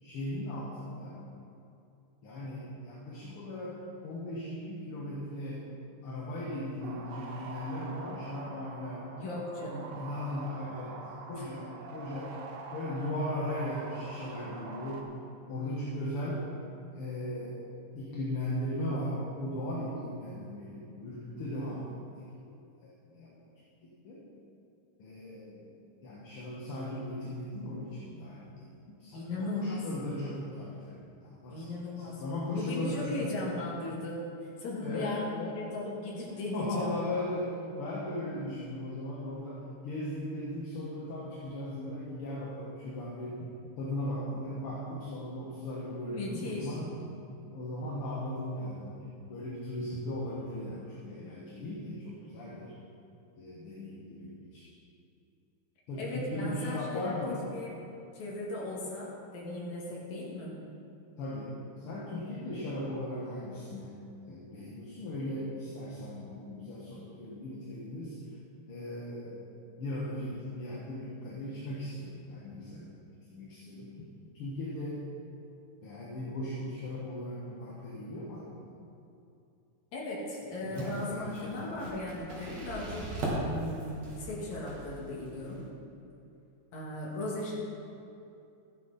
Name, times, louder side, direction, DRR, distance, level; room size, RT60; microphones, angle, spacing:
voice 1, 0.0-1.2 2.2-5.7 6.0-9.2 9.9-15.1 15.4-16.5 16.9-21.9 22.8-23.4 23.8-24.3 25.0-31.7 32.0-33.4 34.8-35.6 36.5-43.5 43.8-47.2 47.5-49.0 49.3-52.8 53.4-54.7 55.9-57.5 61.2-64.0 64.3-68.4 68.7-69.5 69.8-72.9 73.2-74.1 74.3-75.1 75.8-78.7 80.4-81.8, left 1 dB, 55° left, -5 dB, 2.0 m, -38 dB
sound 1, 6.8-15.0, right 4 dB, 85° right, 2.4 m, -45 dB
voice 2, 9.2-10.0 11.3-11.5 29.1-29.8 31.5-32.2 32.5-35.4 35.7-36.9 46.1-46.8 56.0-57.7 58.1-60.5 79.9-83.1 83.4-85.6 86.7-87.6, left 2 dB, 70° left, -4 dB, 3.4 m, -37 dB
sound 2, 80.7-85.7, right 1 dB, 60° right, 3.1 m, -39 dB
14.0 x 9.7 x 4.2 m, 2.7 s
omnidirectional pair, 3.4 m